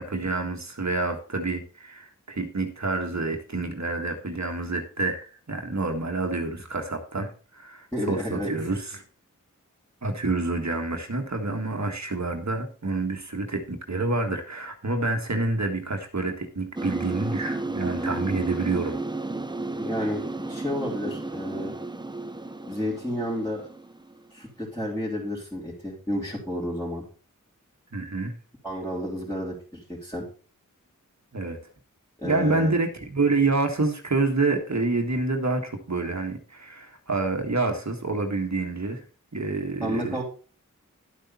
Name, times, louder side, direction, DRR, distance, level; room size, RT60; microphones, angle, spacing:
voice 1, 0.0-9.0 10.0-19.0 27.9-28.4 31.3-31.6 32.2-39.0 39.3-40.2, right 3 dB, 60° right, 4 dB, 1.7 m, -28 dB
voice 2, 7.9-8.5 19.8-21.7 22.7-23.7 24.3-27.0 28.6-29.5 30.0-30.3 32.2-32.7 39.8-40.2, equal, 10° left, -7 dB, 3.6 m, -31 dB
sound 1, 16.8-24.4, right 2 dB, 15° right, 0.7 m, -33 dB
11.0 x 8.2 x 4.3 m, 0.37 s
wide cardioid pair, 55°, 32 cm